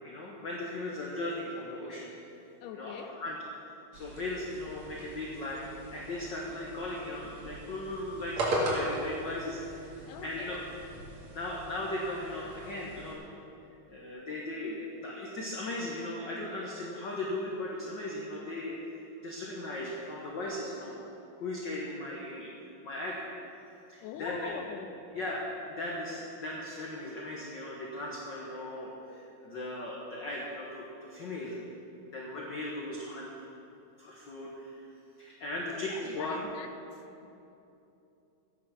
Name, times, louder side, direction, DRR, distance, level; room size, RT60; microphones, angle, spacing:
voice 1, 0.0-2.1 2.7-3.4 3.9-9.9 10.2-10.6 11.3-13.2 13.9-18.8 19.2-21.0 21.4-22.5 22.8-23.2 23.9-24.5 25.1-25.4 25.7-31.6 32.1-33.3 34.0-34.9 35.2-36.4, left 1 dB, 55° left, -3 dB, 1.2 m, -37 dB
voice 2, 2.6-3.2 10.1-10.6 24.0-24.9 35.7-36.7, left 8 dB, 85° left, 7 dB, 2.2 m, -43 dB
sound 1, 3.9-13.1, right 1 dB, 60° right, 3.2 m, -38 dB
14.0 x 9.4 x 5.9 m, 2.8 s
omnidirectional pair, 3.7 m